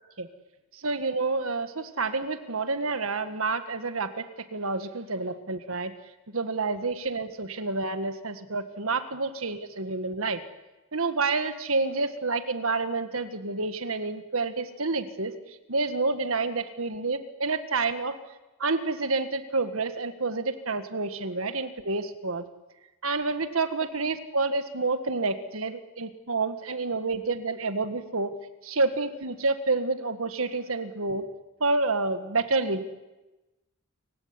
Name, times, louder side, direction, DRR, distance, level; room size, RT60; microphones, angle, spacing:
voice 1, 0.8-5.9 6.3-10.4 10.9-15.3 15.7-18.2 18.6-22.4 23.0-28.4 28.6-31.3 31.6-32.8, right 3 dB, 75° right, 9 dB, 1.8 m, -29 dB
28.5 x 16.5 x 9.8 m, 1.1 s
head